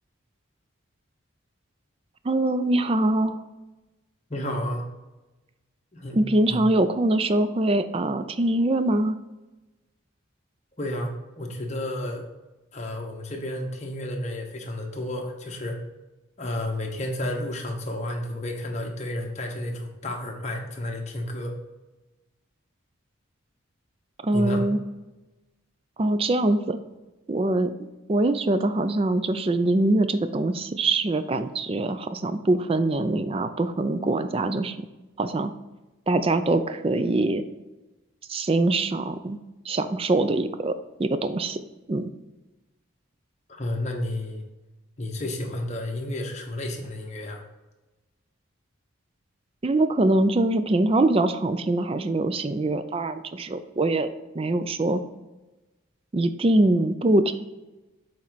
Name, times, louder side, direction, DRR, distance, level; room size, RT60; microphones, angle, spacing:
voice 1, 2.2-3.4 6.1-9.2 24.2-24.8 26.0-26.8 27.3-27.7 28.1-34.9 35.2-35.5 36.1-37.4 38.3-39.4 39.7-41.6 41.9-42.1 49.6-54.1 54.3-55.0 56.1-57.3, right 2 dB, 25° right, 11 dB, 0.4 m, -23 dB
voice 2, 4.3-4.8 5.9-6.6 10.8-12.2 12.7-15.8 16.4-21.5 24.3-24.6 43.5-44.4 45.0-47.4, left 1 dB, 35° left, 1 dB, 1.0 m, -31 dB
7.4 x 4.3 x 4.0 m, 1.1 s
head